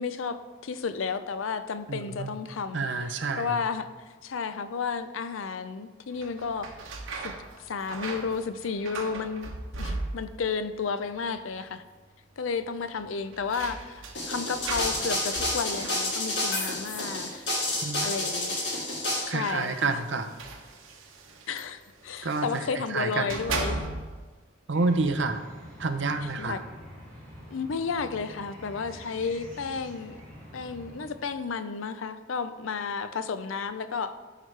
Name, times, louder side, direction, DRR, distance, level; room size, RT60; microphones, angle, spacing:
voice 1, 0.0-2.8 3.4-3.9 4.2-6.7 7.2-7.3 7.6-9.5 9.8-11.8 12.4-17.5 18.0-18.6 19.2-20.0 21.5-23.9 26.4-26.6 27.5-30.2 30.5-34.1, left 5 dB, 85° left, 11 dB, 0.5 m, -32 dB
voice 2, 1.9-2.4 2.7-3.6 17.8-18.1 19.3-20.3 22.2-23.4 24.7-25.4 25.8-26.6, right 3 dB, 65° right, 8 dB, 0.7 m, -29 dB
sound 1, 6.1-10.5 10.8-11.5 11.8-11.9 12.9-18.4 19.2-22.7 23.1-24.3, right 3 dB, 85° right, 1.0 m, -38 dB
sound 2, 14.1-19.2, left 2 dB, 60° left, 2.3 m, -29 dB
sound 3, 24.7-31.4, equal, 5° left, 2.3 m, -47 dB
13.0 x 4.9 x 3.3 m, 1.3 s
head